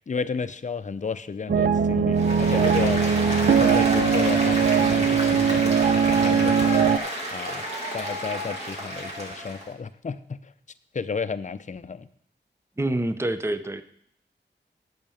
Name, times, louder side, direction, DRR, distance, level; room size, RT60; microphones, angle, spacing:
voice 1, 0.1-5.7 6.1-6.9 7.3-7.7 7.9-10.5 10.9-12.1, left 5 dB, 40° left, 12 dB, 0.5 m, -32 dB
sound 1, 1.5-7.0, right 6 dB, 60° right, 0.4 m, -21 dB
Applause, 2.1-9.7, right 1 dB, 35° right, 2.8 m, -30 dB
voice 2, 12.8-13.8, right 1 dB, 15° right, 12 dB, 0.6 m, -26 dB
8.8 x 5.7 x 7.0 m, 0.68 s
wide cardioid pair, 70°, 19 cm